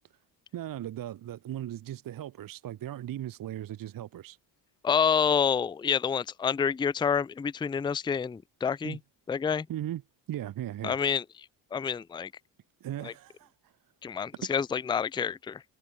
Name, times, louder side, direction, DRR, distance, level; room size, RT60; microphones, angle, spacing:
voice 1, 0.5-4.4 8.8-9.0 9.7-10.0 10.3-11.0 12.8-13.5 14.4-14.5, right 12 dB, 45° right, 0.7 m, -37 dB
voice 2, 4.8-9.0 9.3-9.7 10.8-11.2 11.7-12.3 13.0-13.1 14.0-15.6, left 7 dB, 10° left, 0.4 m, -28 dB
cardioid pair, 80°, 46 cm